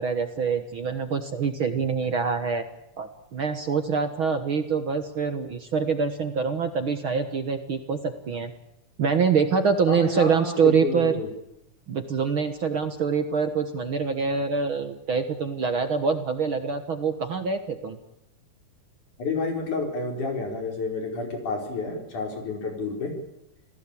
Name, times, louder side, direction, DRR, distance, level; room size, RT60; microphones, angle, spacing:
voice 1, 0.0-2.6 3.0-8.5 9.0-11.1 11.9-18.0, right 5 dB, 50° right, 8 dB, 1.8 m, -25 dB
voice 2, 9.9-11.3 19.2-23.1, left 3 dB, 70° left, 3 dB, 6.4 m, -30 dB
28.5 x 18.0 x 8.6 m, 0.82 s
omnidirectional pair, 3.6 m